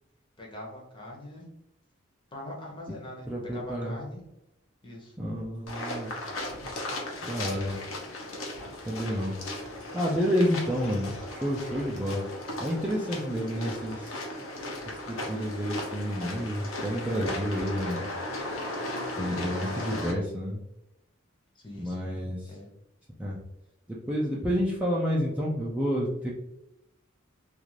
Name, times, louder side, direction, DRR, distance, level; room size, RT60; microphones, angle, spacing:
voice 1, 0.4-1.5 2.3-3.3 3.5-4.2 4.8-5.2 21.6-22.7, left 1 dB, 25° left, -2 dB, 0.7 m, -42 dB
voice 2, 3.3-4.0 5.2-6.1 7.2-7.8 8.9-9.3 9.9-12.2 12.6-14.3 14.9-18.1 19.2-20.6 21.8-22.5 23.2-23.4 24.1-26.3, equal, 5° right, -5 dB, 0.3 m, -29 dB
sound 1, 5.7-20.1, left 1 dB, 75° left, 0.7 m, -36 dB
2.4 x 2.4 x 3.1 m, 0.87 s
head